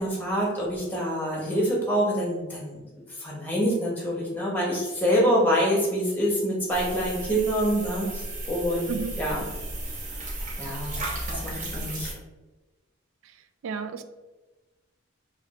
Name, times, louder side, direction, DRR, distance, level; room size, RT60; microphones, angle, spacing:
voice 1, 0.0-2.8 3.2-8.9 9.2-9.4 10.6-10.9 11.3-12.1, equal, 10° left, -4 dB, 0.8 m, -26 dB
sound 1, 6.7-12.1, right 1 dB, 40° right, 0.7 m, -34 dB
voice 2, 13.6-14.0, right 5 dB, 75° right, 10 dB, 0.3 m, -32 dB
4.5 x 2.4 x 2.3 m, 1.2 s
head